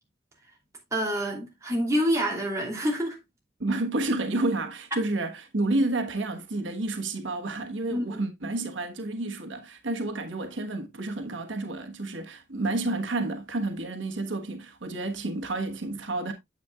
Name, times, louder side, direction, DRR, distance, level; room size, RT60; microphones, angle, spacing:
voice 1, 0.9-3.2 7.9-8.2, equal, 15° right, 2.9 m, -27 dB
voice 2, 3.6-16.3, right 2 dB, 85° right, 1.3 m, -30 dB
9.3 x 7.9 x 2.3 m
head